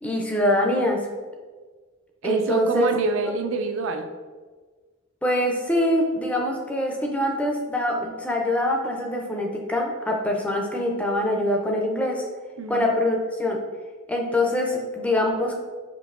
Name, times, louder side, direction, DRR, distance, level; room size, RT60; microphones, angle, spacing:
voice 1, 0.0-1.1 2.2-2.9 5.2-12.2 12.7-13.6 14.1-15.6, left 1 dB, 5° left, 0 dB, 0.4 m, -24 dB
voice 2, 2.2-4.1 12.6-13.0, right 4 dB, 65° right, 6 dB, 0.4 m, -26 dB
5.1 x 2.7 x 2.5 m, 1.4 s
head